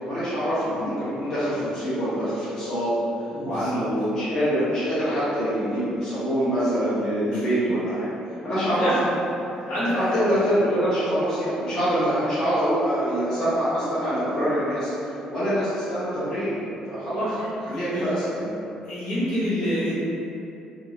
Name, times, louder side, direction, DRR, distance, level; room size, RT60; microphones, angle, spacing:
voice 1, 0.0-2.9 3.4-8.1 8.4-8.9 9.9-14.9 15.3-16.6 16.9-17.2 17.7-18.5, equal, 30° left, -13 dB, 0.8 m, -25 dB
voice 2, 3.3-3.8 7.3-7.4 8.8-9.0 9.4-10.1 17.1-18.1 18.8-19.9, equal, 70° left, -12 dB, 1.3 m, -28 dB
2.6 x 2.4 x 3.1 m, 2.8 s
cardioid pair, 170°, 2 cm